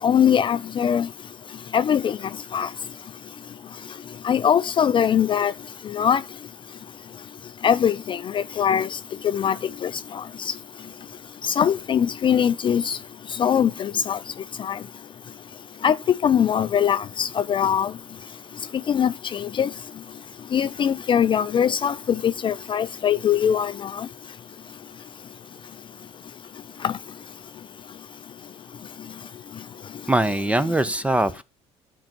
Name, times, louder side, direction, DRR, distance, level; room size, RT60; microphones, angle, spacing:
voice 1, 0.0-1.1 1.7-2.2 2.5-2.7 4.2-5.5 5.9-6.2 7.6-9.0 9.3-9.5 9.8-10.2 10.5-10.6 11.4-13.0 13.4-14.2 14.6-14.8 15.8-15.9 16.2-17.9 18.9-19.7 20.5-21.9 22.2-24.1 26.8-26.9, left 8 dB, 35° left, 0.4 m, -21 dB
voice 2, 30.1-31.4, right 1 dB, 10° right, 0.8 m, -22 dB
13.5 x 4.5 x 3.0 m
hypercardioid pair, 75°, 14 cm